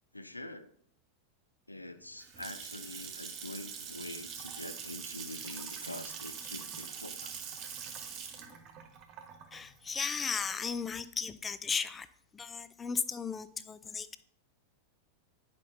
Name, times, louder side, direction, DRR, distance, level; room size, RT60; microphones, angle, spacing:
voice 1, 0.1-0.7 1.7-7.3, left 2 dB, 85° left, 0.5 m, -45 dB
Water tap faucet / Sink (filling or washing) / Splash splatter, 2.0-10.8, right 7 dB, 35° right, 1.3 m, -43 dB
voice 2, 9.5-12.1 12.3-14.2, left 5 dB, 15° left, 0.4 m, -35 dB
10.5 x 5.2 x 2.7 m
figure-of-eight pair, 90°, 0 cm